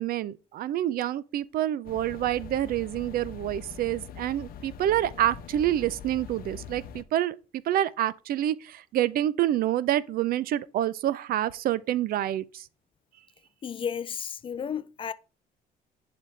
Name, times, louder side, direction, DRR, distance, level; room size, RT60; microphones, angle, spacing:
voice 1, 0.0-7.3 7.7-12.6, right 12 dB, 60° right, 0.5 m, -27 dB
sound 1, 1.8-7.0, left 7 dB, 60° left, 0.7 m, -43 dB
voice 2, 13.6-15.1, left 7 dB, 30° left, 0.4 m, -33 dB
10.5 x 4.0 x 3.3 m
cardioid pair, 110°, 17 cm